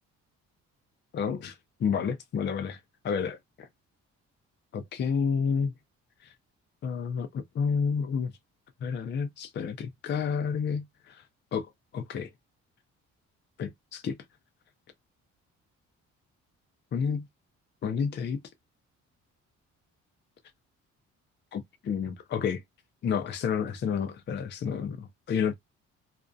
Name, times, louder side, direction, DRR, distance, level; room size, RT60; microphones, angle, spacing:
voice 1, 1.1-1.5 1.8-2.8 3.0-3.7 4.7-5.7 6.2-6.3 6.8-8.3 8.8-11.2 11.5-11.6 11.9-12.3 13.6-14.2 16.9-17.3 17.8-18.4 21.5-22.6 23.0-25.5, left 6 dB, 35° left, 0.4 m, -30 dB
2.4 x 2.1 x 2.5 m
cardioid pair, 90°, 30 cm